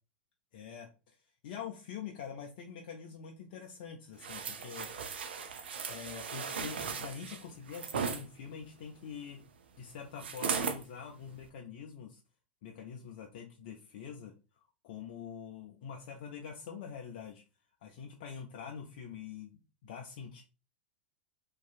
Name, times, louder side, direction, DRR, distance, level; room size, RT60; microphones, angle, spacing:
voice 1, 0.5-0.9 1.2-4.9 5.9-9.4 9.8-12.2 12.6-17.4 17.8-20.4, left 7 dB, 55° left, 2 dB, 0.4 m, -45 dB
sound 1, 4.2-8.2 10.2-10.8 11.4-11.5, right 6 dB, 70° right, 0.4 m, -37 dB
2.6 x 2.3 x 2.4 m, 0.32 s
figure-of-eight pair, 100°, 6 cm